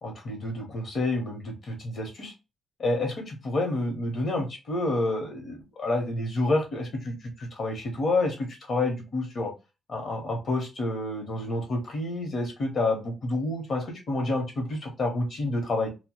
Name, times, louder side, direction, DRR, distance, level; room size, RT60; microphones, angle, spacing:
voice 1, 0.0-2.3 2.8-9.5 9.9-15.9, left 2 dB, 40° left, 2 dB, 0.9 m, -29 dB
2.2 x 2.2 x 2.9 m, 0.26 s
cardioid pair, 155°, 0 cm